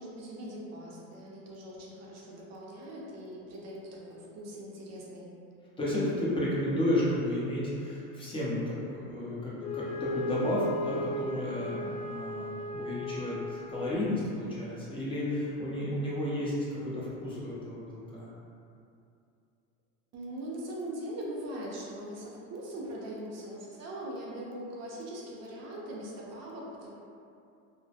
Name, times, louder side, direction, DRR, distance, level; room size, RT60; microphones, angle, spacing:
voice 1, 0.0-5.3 20.1-26.9, right 1 dB, 40° right, -4 dB, 0.6 m, -41 dB
voice 2, 5.8-18.3, left 1 dB, 10° left, -8 dB, 0.6 m, -32 dB
Wind instrument woodwind instrument, 9.6-14.2, left 1 dB, 60° left, 0.5 m, -36 dB
2.2 x 2.1 x 2.7 m, 2.5 s
hypercardioid pair, 95°, 44 cm